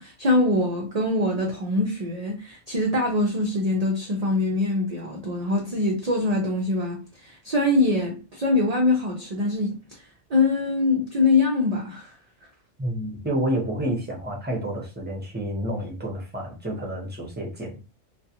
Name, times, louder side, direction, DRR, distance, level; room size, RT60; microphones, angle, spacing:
voice 1, 0.0-9.8 10.3-12.1, left 2 dB, 50° right, 0.4 m, -23 dB
voice 2, 12.8-17.8, right 1 dB, 10° right, 0.6 m, -29 dB
2.3 x 2.3 x 2.8 m
omnidirectional pair, 1.3 m